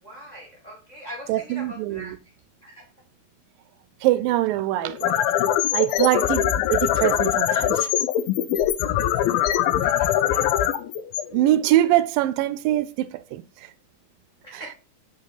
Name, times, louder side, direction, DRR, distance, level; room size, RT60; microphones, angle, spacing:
voice 1, 0.0-2.3 2.6-2.9 8.8-10.7 14.4-14.7, equal, 20° left, 1.1 m, -43 dB
voice 2, 1.3-2.2 4.0-5.2 5.7-7.9 11.3-13.4, right 14 dB, 85° right, 2.3 m, -23 dB
sound 1, 4.8-11.9, left 11 dB, 90° left, 2.5 m, -23 dB
8.6 x 5.2 x 4.0 m
omnidirectional pair, 4.1 m